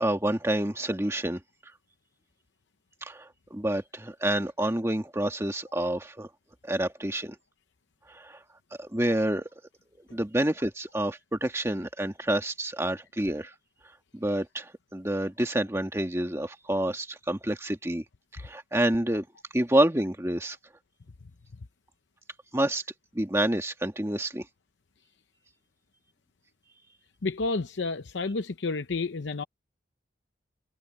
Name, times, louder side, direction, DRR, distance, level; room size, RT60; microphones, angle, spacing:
voice 1, 0.0-1.4 3.0-6.3 6.6-7.4 8.1-8.4 8.8-9.5 10.1-13.5 14.1-18.0 18.3-19.2 19.5-20.6 22.5-22.8 23.1-24.5, right 1 dB, 15° right, 1.6 m, -28 dB
voice 2, 27.2-29.4, left 3 dB, 75° left, 0.7 m, -30 dB
head